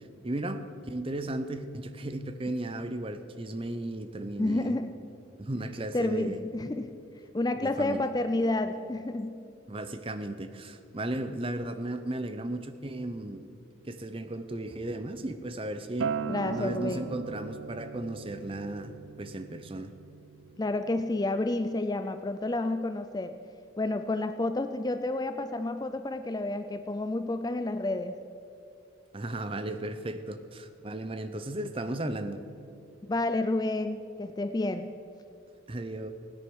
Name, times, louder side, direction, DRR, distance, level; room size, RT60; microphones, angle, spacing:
voice 1, 0.2-4.8 5.4-6.4 7.6-8.1 9.7-13.5 13.8-16.1 16.4-18.9 19.2-19.9 29.1-32.4 35.7-36.1, right 1 dB, 25° right, 10 dB, 0.6 m, -35 dB
voice 2, 4.4-5.0 5.9-7.0 7.3-9.4 16.3-17.1 20.6-23.4 23.8-28.2 33.1-34.9, left 2 dB, 20° left, 10 dB, 0.4 m, -30 dB
Acoustic guitar, 16.0-21.2, right 6 dB, 70° right, 0.4 m, -38 dB
16.5 x 9.8 x 6.2 m, 2.6 s
head